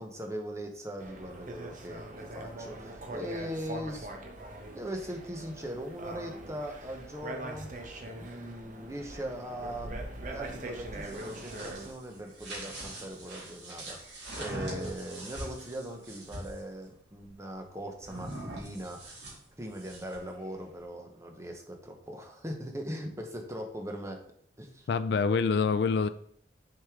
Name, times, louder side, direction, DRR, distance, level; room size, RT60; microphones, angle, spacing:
voice 1, 0.0-4.1 4.7-7.7 8.2-10.0 10.3-19.1 19.6-24.2 24.6-24.9, equal, 15° right, 0.9 m, -40 dB
sound 1, 1.0-11.9, right 1 dB, 45° right, 0.9 m, -42 dB
sound 2, 11.0-16.6 18.0-20.3, right 1 dB, 70° right, 2.7 m, -42 dB
voice 2, 24.9-26.1, left 5 dB, 60° left, 0.3 m, -26 dB
6.3 x 4.9 x 3.6 m
head